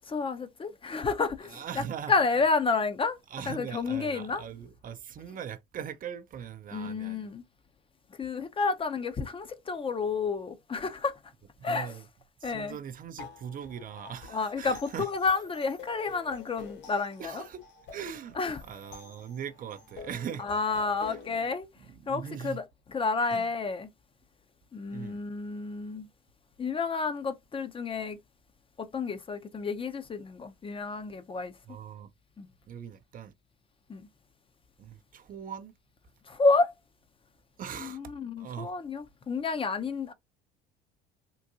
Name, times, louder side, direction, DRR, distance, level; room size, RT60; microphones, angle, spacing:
voice 1, 0.1-1.6 2.1-3.2 3.5-4.5 6.7-7.4 8.2-11.2 11.6-11.9 12.4-12.8 14.3-17.4 18.4-18.6 20.4-21.7 22.1-22.6 22.9-23.9 24.7-26.1 26.6-28.2 28.8-31.5 32.4-32.5 33.9-34.1 36.3-36.7 37.8-40.1, left 4 dB, 25° left, 0.6 m, -30 dB
voice 2, 1.4-2.3 3.3-7.3 11.6-12.1 12.4-15.1 17.2-17.6 17.9-20.5 21.1-21.4 21.8-22.6 23.3-23.6 24.9-25.2 31.6-32.1 32.7-33.3 34.8-35.7 37.6-38.7, right 8 dB, 40° right, 0.5 m, -41 dB
sound 1, 13.2-21.5, left 5 dB, 60° left, 1.7 m, -48 dB
3.8 x 2.5 x 2.7 m
supercardioid pair, 80°, 21 cm